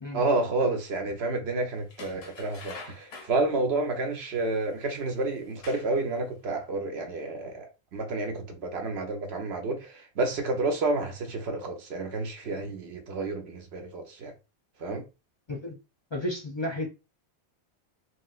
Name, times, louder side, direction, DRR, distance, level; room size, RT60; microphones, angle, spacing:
voice 1, 0.1-7.7 7.9-14.3 14.8-15.1, right 2 dB, 80° right, 1.1 m, -30 dB
sound 1, 1.9-3.4 4.5-4.6 5.3-6.0 6.5-6.6, left 3 dB, 75° left, 0.9 m, -45 dB
voice 2, 16.1-16.9, left 1 dB, 35° left, 0.5 m, -32 dB
3.1 x 3.0 x 2.4 m
omnidirectional pair, 1.1 m